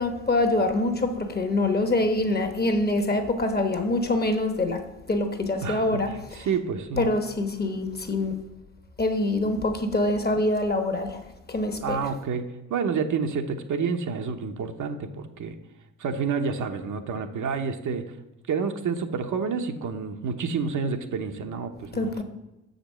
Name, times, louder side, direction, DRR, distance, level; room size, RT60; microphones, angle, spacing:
voice 1, 0.0-4.8 5.1-6.1 7.0-8.4 9.0-11.2 11.5-12.0 21.9-22.2, left 2 dB, 25° left, 7 dB, 1.1 m, -25 dB
voice 2, 5.6-7.1 11.8-12.4 12.7-15.5 16.0-18.0 18.5-22.2, right 5 dB, 60° right, 5 dB, 0.9 m, -29 dB
6.6 x 5.2 x 6.4 m, 0.98 s
cardioid pair, 90°, 35 cm